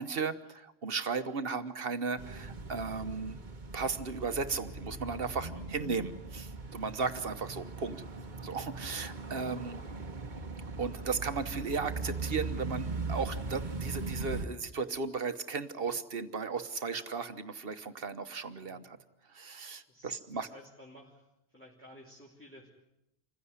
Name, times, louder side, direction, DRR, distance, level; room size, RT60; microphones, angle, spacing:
voice 1, 0.0-3.4 3.7-8.0 8.4-9.8 10.8-19.0 19.3-20.5, right 5 dB, 65° right, 10 dB, 1.4 m, -35 dB
sound 1, 2.2-14.5, right 3 dB, 50° right, 1.4 m, -40 dB
voice 2, 4.6-5.9 7.2-7.6 18.6-19.1 19.9-22.7, left 1 dB, 10° left, -5 dB, 3.3 m, -56 dB
26.0 x 16.0 x 9.7 m, 0.86 s
omnidirectional pair, 1.1 m